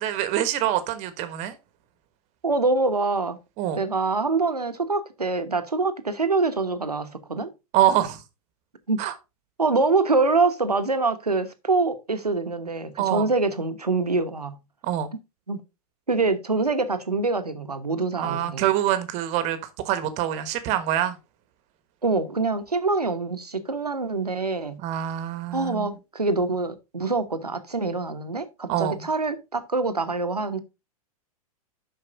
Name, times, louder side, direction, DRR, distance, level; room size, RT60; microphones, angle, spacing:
voice 1, 0.0-1.5 3.6-3.8 7.7-8.2 9.0-9.1 13.0-13.2 14.8-15.1 18.2-19.6 19.8-21.2 24.8-26.0 28.7-29.1, right 12 dB, 35° right, 1.3 m, -25 dB
voice 2, 2.4-3.4 3.7-7.5 8.9-9.1 9.6-14.6 15.5-15.6 16.1-18.7 22.0-24.8 25.5-30.6, right 3 dB, 85° right, 1.1 m, -25 dB
7.8 x 5.8 x 4.0 m
figure-of-eight pair, 100°, 19 cm